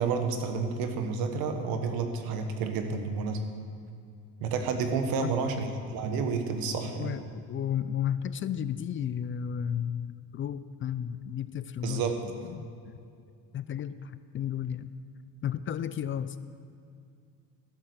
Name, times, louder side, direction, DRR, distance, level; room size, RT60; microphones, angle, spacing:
voice 1, 0.0-3.4 4.4-5.6 5.9-7.1 11.8-12.2, right 5 dB, 75° right, 6 dB, 1.4 m, -30 dB
voice 2, 7.0-13.0 13.5-14.9 15.4-16.4, left 9 dB, 35° left, 14 dB, 0.4 m, -33 dB
12.5 x 7.5 x 6.9 m, 2.4 s
cardioid pair, 105°, 36 cm